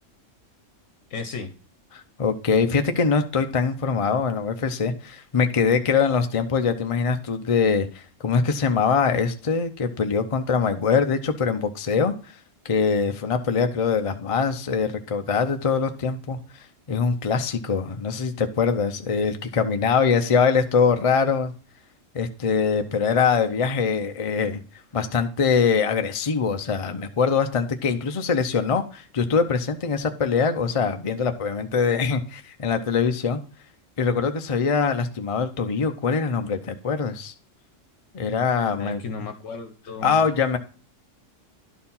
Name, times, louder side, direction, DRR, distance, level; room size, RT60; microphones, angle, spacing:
voice 1, 1.1-1.5 38.8-40.2, left 4 dB, 75° left, 7 dB, 1.1 m, -34 dB
voice 2, 2.2-12.1 12.6-21.5 22.1-24.6 24.9-33.4 34.0-37.3 38.1-39.0 40.0-40.6, left 5 dB, 40° left, 6 dB, 0.5 m, -23 dB
11.5 x 4.5 x 5.5 m, 0.38 s
omnidirectional pair, 1.3 m